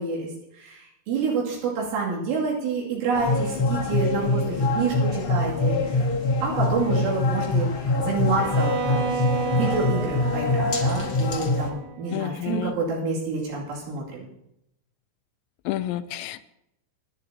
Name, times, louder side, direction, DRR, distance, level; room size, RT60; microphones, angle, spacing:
voice 1, 0.0-6.0 6.4-7.7 8.0-9.1 9.5-14.3, right 4 dB, 80° right, -4 dB, 5.1 m, -28 dB
sound 1, 3.1-11.7, left 2 dB, 65° left, 1.3 m, -24 dB
Bowed string instrument, 8.4-12.4, right 6 dB, 55° right, 3.5 m, -32 dB
voice 2, 12.1-12.7 15.7-16.4, left 13 dB, 85° left, 11 dB, 2.7 m, -30 dB
24.0 x 11.0 x 2.8 m, 0.81 s
omnidirectional pair, 5.6 m